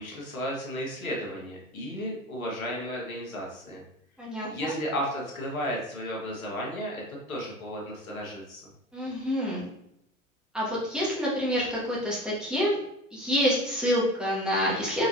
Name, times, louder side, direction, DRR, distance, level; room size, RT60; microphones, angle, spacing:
voice 1, 0.0-3.8 4.5-8.6, equal, 80° left, -2 dB, 1.6 m, -34 dB
voice 2, 4.2-4.8 8.9-9.7 10.5-12.8 13.1-15.1, equal, ahead, -7 dB, 1.6 m, -27 dB
4.6 x 4.1 x 2.7 m, 0.77 s
figure-of-eight pair, 90°, 41 cm